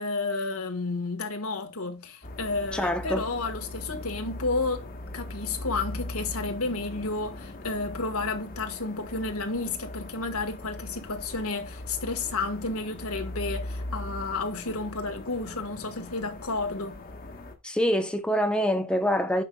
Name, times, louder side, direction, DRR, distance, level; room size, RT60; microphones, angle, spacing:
voice 1, 0.0-4.9 5.1-17.0, left 3 dB, 75° left, 1.6 m, -31 dB
sound 1, 2.2-17.5, left 1 dB, 45° left, 1.5 m, -40 dB
voice 2, 2.7-3.2 17.6-19.4, equal, 5° left, 0.9 m, -25 dB
9.9 x 5.6 x 2.4 m
head